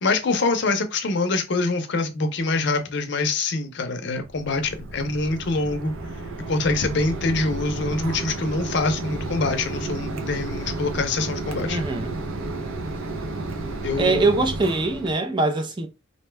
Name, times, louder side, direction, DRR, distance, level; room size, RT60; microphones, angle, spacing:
voice 1, 0.0-5.9 6.5-11.8 13.8-14.2, left 3 dB, 55° left, 0.6 m, -25 dB
Mechanisms, 4.2-15.1, right 2 dB, 85° right, 0.6 m, -32 dB
voice 2, 11.7-12.1 14.0-15.9, right 3 dB, 25° right, 0.4 m, -22 dB
2.6 x 2.2 x 3.2 m
head